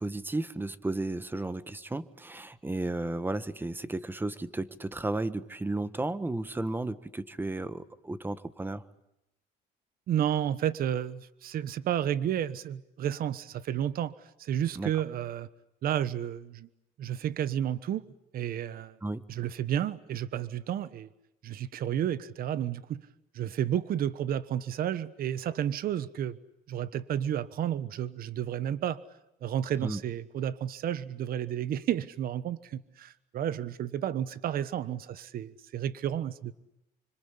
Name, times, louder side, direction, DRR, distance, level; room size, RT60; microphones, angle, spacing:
voice 1, 0.0-8.8 14.7-14.9 19.0-19.2 29.8-30.0, right 2 dB, 10° right, 15 dB, 1.4 m, -33 dB
voice 2, 10.1-14.1 14.4-15.5 15.8-16.7 17.0-18.0 18.3-19.0 19.3-21.1 21.4-23.0 23.3-26.4 26.7-29.0 29.4-36.5, right 10 dB, 60° right, 16 dB, 1.3 m, -31 dB
26.5 x 25.5 x 8.5 m, 0.85 s
cardioid pair, 110°, 17 cm